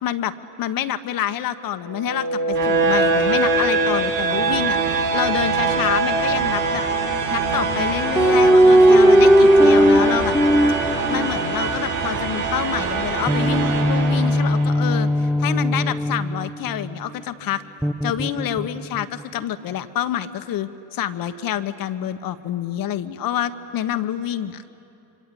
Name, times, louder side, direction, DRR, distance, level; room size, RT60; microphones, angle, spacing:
voice 1, 0.0-6.8 7.3-10.3 11.1-17.6 18.0-24.6, left 11 dB, 50° left, 11 dB, 1.4 m, -27 dB
sound 1, 1.8-14.8, right 4 dB, 40° right, 6.1 m, -23 dB
sound 2, 8.2-11.8 13.3-17.0 17.8-19.0, equal, ahead, 0.6 m, -17 dB
26.0 x 25.5 x 8.7 m, 2.9 s
hypercardioid pair, 65°, 45 cm